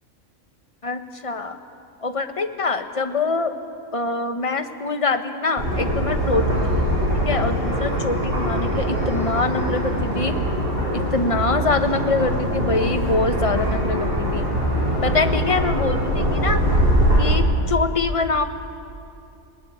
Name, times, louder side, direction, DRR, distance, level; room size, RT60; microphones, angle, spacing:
voice 1, 0.8-1.6 2.0-3.5 3.9-6.8 7.2-10.4 10.9-14.5 15.0-16.6 17.2-18.4, left 3 dB, 25° left, 8 dB, 0.9 m, -24 dB
sound 1, 5.6-17.3, equal, 40° right, 7.9 m, -22 dB
19.5 x 18.0 x 9.6 m, 2.5 s
omnidirectional pair, 1.4 m